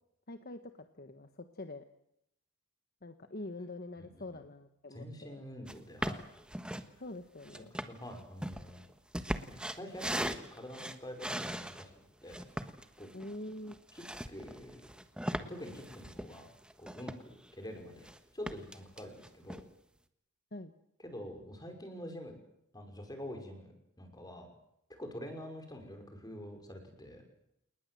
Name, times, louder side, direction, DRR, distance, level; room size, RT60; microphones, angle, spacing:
voice 1, 0.3-1.8 3.0-5.4 6.9-7.7 13.1-13.8 20.5-20.7, left 2 dB, 45° left, 8 dB, 1.3 m, -45 dB
voice 2, 4.0-4.4 4.9-6.2 7.8-8.8 9.3-11.9 12.2-12.4 13.0-13.1 13.9-14.9 15.5-16.5 16.8-19.6 21.0-22.4 22.7-23.7 24.0-24.5 24.9-27.3, equal, 20° left, 5 dB, 5.5 m, -46 dB
sound 1, 5.7-5.8 6.0-6.9 7.4-11.8 12.3-17.5 17.8-18.2 18.5-19.6, right 1 dB, 5° right, 1.3 m, -39 dB
29.5 x 20.0 x 7.8 m, 0.78 s
head